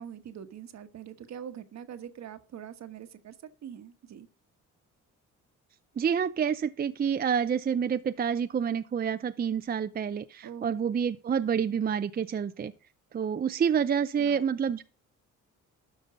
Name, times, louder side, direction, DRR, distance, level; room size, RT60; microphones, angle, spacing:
voice 1, 0.0-3.4 3.6-4.3 10.4-10.7 14.2-14.4, right 9 dB, 65° right, 10 dB, 1.3 m, -43 dB
voice 2, 6.0-12.7 13.1-14.8, right 7 dB, 30° right, 10 dB, 0.5 m, -28 dB
12.5 x 5.4 x 5.1 m, 0.37 s
cardioid pair, 90°, 30 cm